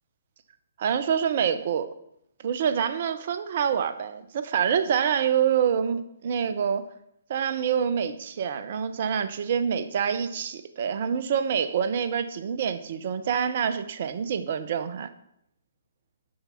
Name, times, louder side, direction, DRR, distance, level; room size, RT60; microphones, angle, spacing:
voice 1, 0.8-1.9 2.4-6.8 7.3-15.1, right 8 dB, 45° right, 11 dB, 0.7 m, -26 dB
6.5 x 6.0 x 5.8 m, 0.76 s
figure-of-eight pair, 130°, 0 cm